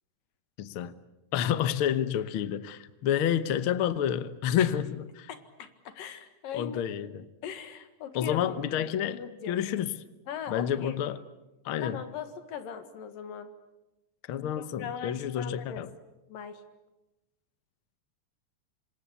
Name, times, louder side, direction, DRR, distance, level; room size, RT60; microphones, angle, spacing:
voice 1, 0.6-0.9 1.3-5.3 6.5-7.2 8.1-9.2 9.5-9.9 10.5-11.2 11.6-12.0 14.3-15.9, left 9 dB, 65° left, 13 dB, 1.3 m, -29 dB
voice 2, 5.3-6.8 7.4-8.4 8.8-9.6 10.3-11.0 11.8-13.5 14.4-15.8 16.3-16.6, left 7 dB, 85° left, 9 dB, 3.5 m, -40 dB
27.5 x 26.0 x 8.2 m, 1.0 s
omnidirectional pair, 3.8 m